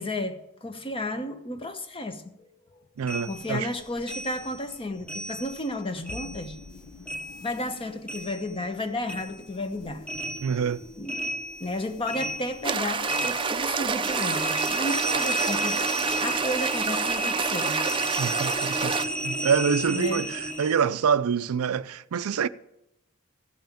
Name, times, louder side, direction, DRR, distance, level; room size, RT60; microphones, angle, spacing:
voice 1, 0.0-2.5 3.2-6.5 7.4-10.0 11.0-11.3 11.6-17.8 19.9-20.2, left 1 dB, 25° left, 1.0 m, -33 dB
voice 2, 3.0-3.7 10.4-10.8 18.2-19.0 19.2-22.5, right 6 dB, 75° right, 0.4 m, -26 dB
sound 1, 3.1-5.8 6.0-8.8 9.1-20.9, right 1 dB, 5° left, 1.1 m, -33 dB
sound 2, 5.6-16.1, left 5 dB, 85° left, 0.6 m, -48 dB
sound 3, 12.6-19.1, right 5 dB, 25° right, 0.6 m, -28 dB
14.5 x 5.6 x 8.9 m
head